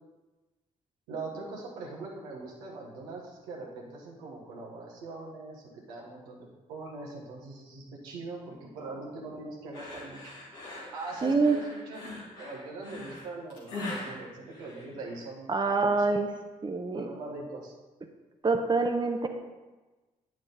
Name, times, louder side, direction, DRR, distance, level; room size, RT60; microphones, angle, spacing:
voice 1, 1.1-10.3 10.9-12.0 12.4-15.5 15.8-16.0 16.9-17.7, right 3 dB, 85° right, -3 dB, 1.4 m, -41 dB
sound 1, 9.7-15.3, left 2 dB, 85° left, 2.2 m, -41 dB
voice 2, 11.2-11.6 15.5-16.3 16.6-17.2 18.4-19.3, right 3 dB, 25° right, 5 dB, 0.9 m, -26 dB
9.0 x 6.1 x 4.1 m, 1.2 s
hypercardioid pair, 40°, 18 cm